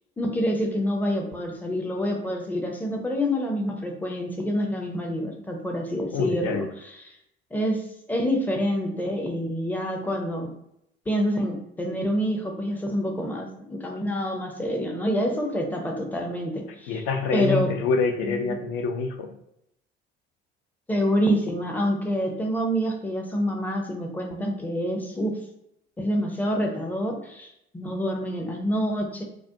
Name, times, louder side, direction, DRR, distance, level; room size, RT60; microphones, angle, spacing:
voice 1, 0.2-6.6 7.5-7.8 8.1-10.5 11.1-17.0 17.3-17.7 18.2-18.4 20.9-25.3 26.0-29.2, equal, 5° left, 1 dB, 0.4 m, -27 dB
voice 2, 6.1-6.7 16.9-19.4, left 4 dB, 60° left, 5 dB, 0.5 m, -26 dB
2.3 x 2.1 x 2.6 m, 0.78 s
figure-of-eight pair, 60°, 30 cm